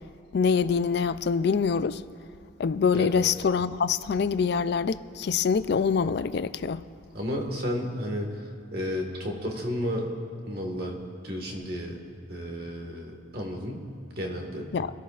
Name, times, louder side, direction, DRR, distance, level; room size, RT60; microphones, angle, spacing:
voice 1, 0.3-2.0 2.6-6.8 14.7-14.9, left 6 dB, 55° left, 0.3 m, -25 dB
voice 2, 7.1-10.1 10.4-10.9 11.2-12.0 12.3-13.9 14.2-14.7, equal, 50° right, 1.7 m, -32 dB
21.5 x 13.5 x 2.4 m
head